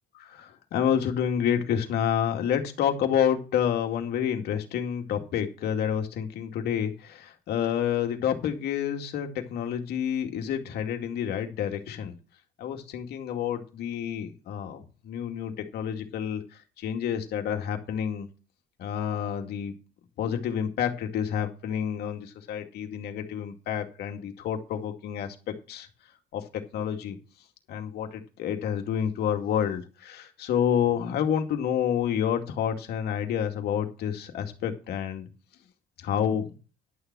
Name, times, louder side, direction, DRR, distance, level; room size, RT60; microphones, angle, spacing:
voice 1, 0.2-12.1 12.6-16.4 16.8-18.3 18.8-19.7 20.2-25.9 26.3-27.2 27.7-35.3 36.0-36.5, left 9 dB, 75° left, 4 dB, 2.3 m, -29 dB
11.0 x 7.0 x 6.2 m, 0.34 s
cardioid pair, 110°, 17 cm